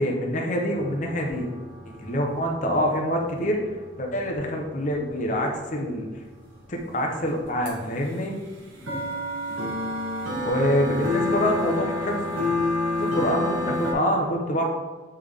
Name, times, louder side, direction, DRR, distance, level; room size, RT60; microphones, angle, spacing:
voice 1, 0.0-1.5 1.9-3.6 4.0-6.1 6.7-8.4 10.4-12.3 13.0-14.7, equal, 40° left, 0 dB, 0.9 m, -25 dB
sound 1, 0.7-6.6 7.1-7.2 7.4-7.7 8.0-13.9, left 2 dB, 80° right, 1.3 m, -29 dB
8.5 x 3.5 x 3.6 m, 1.3 s
head